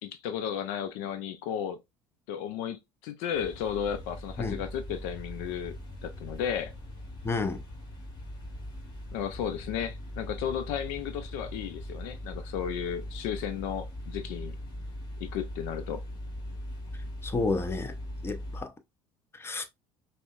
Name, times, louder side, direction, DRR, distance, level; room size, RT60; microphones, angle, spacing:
voice 1, 0.0-1.8 2.3-5.7 6.0-6.7 9.1-14.6 15.2-16.0, left 8 dB, 70° left, 0.4 m, -34 dB
sound 1, 3.3-18.6, left 1 dB, 35° left, 1.7 m, -40 dB
voice 2, 7.2-7.6 17.2-17.9 18.2-18.7 19.3-19.7, left 3 dB, 20° left, 0.7 m, -30 dB
5.2 x 2.1 x 2.4 m
hypercardioid pair, 70°, 12 cm